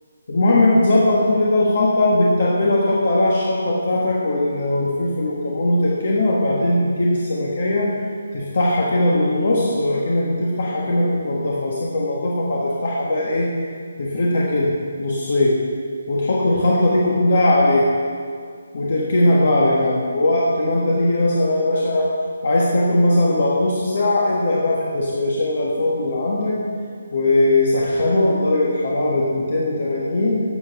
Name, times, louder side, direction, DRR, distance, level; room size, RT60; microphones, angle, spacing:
voice 1, 0.3-7.9 8.3-13.5 14.0-14.7 15.0-15.6 16.1-17.9 18.7-22.1 22.4-26.6 27.1-30.4, left 1 dB, 40° left, -4 dB, 1.4 m, -19 dB
13.5 x 5.5 x 6.9 m, 2.1 s
hypercardioid pair, 180°, 0 cm